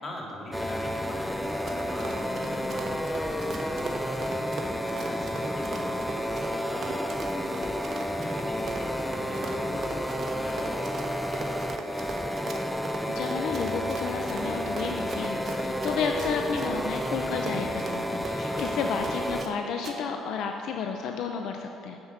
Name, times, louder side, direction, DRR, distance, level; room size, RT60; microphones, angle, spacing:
voice 1, 0.0-12.1 18.4-18.6, left 1 dB, 30° left, -2 dB, 2.3 m, -43 dB
sound 1, 0.5-19.5, equal, ahead, 0.5 m, -31 dB
Run, 1.4-19.5 19.8-20.0, right 4 dB, 50° right, 1.2 m, -40 dB
voice 2, 13.1-22.0, left 6 dB, 70° left, 4 dB, 0.6 m, -32 dB
7.8 x 7.3 x 7.2 m, 2.8 s
cardioid pair, 100°, 0 cm